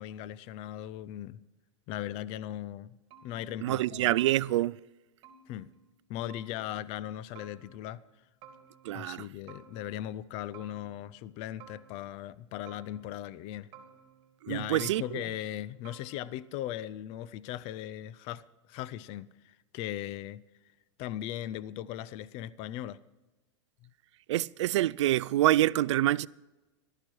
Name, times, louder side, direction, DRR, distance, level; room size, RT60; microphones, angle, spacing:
voice 1, 0.0-1.4 1.9-3.0 3.2-4.1 5.5-5.7 6.1-8.0 8.9-13.7 14.5-20.4 21.0-23.0 23.8-23.9, left 12 dB, 40° left, 0.6 m, -38 dB
sound 1, 3.1-3.9 4.2-4.8 5.2-6.0 6.3-6.9 7.3-8.1 8.4-9.1 9.5-10.2 10.5-11.3 11.6-12.3 12.7-13.4 13.7-14.5 14.8-15.5 15.8-16.6, right 7 dB, 35° right, 2.3 m, -56 dB
voice 2, 3.6-4.8 8.8-9.2 14.4-15.0 24.3-26.3, right 14 dB, 70° right, 0.4 m, -26 dB
15.0 x 12.5 x 4.6 m
hypercardioid pair, 125°, 16 cm